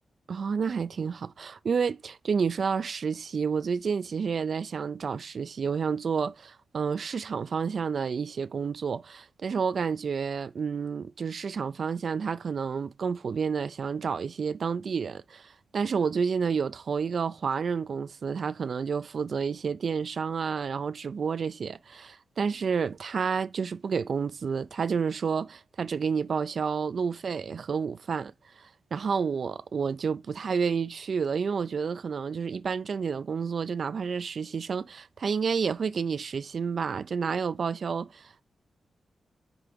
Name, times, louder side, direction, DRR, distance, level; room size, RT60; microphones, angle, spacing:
voice 1, 0.3-38.3, right 6 dB, 60° right, 0.3 m, -30 dB
5.2 x 4.7 x 5.9 m
wide cardioid pair, 105°, 0 cm